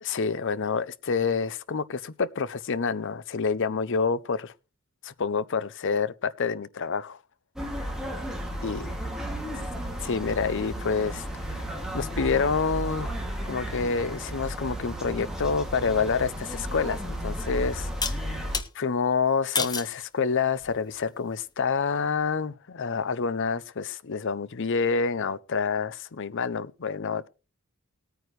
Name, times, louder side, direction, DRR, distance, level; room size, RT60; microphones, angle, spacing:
voice 1, 0.0-4.5 5.0-7.2 8.6-8.9 10.0-13.1 13.5-27.3, left 5 dB, 55° left, 0.6 m, -28 dB
sound 1, 7.6-18.6, equal, ahead, 2.3 m, -34 dB
sound 2, 18.0-18.7 19.6-20.0 20.6-21.0, left 5 dB, 20° left, 0.9 m, -30 dB
19.0 x 9.3 x 3.2 m
head